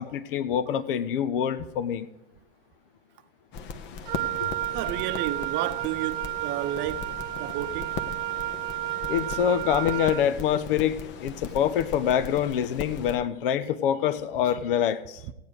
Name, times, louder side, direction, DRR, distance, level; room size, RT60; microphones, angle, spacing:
voice 1, 0.0-2.1 4.4-4.5 9.1-15.2, left 9 dB, 60° left, 1.1 m, -26 dB
sound 1, 3.5-13.2, left 5 dB, 40° left, 1.1 m, -38 dB
Wind instrument woodwind instrument, 4.1-10.3, right 16 dB, 55° right, 0.5 m, -32 dB
voice 2, 4.7-7.1 7.4-8.0 15.2-15.3, right 12 dB, 40° right, 0.9 m, -32 dB
16.0 x 9.4 x 4.8 m
hypercardioid pair, 100°, 30 cm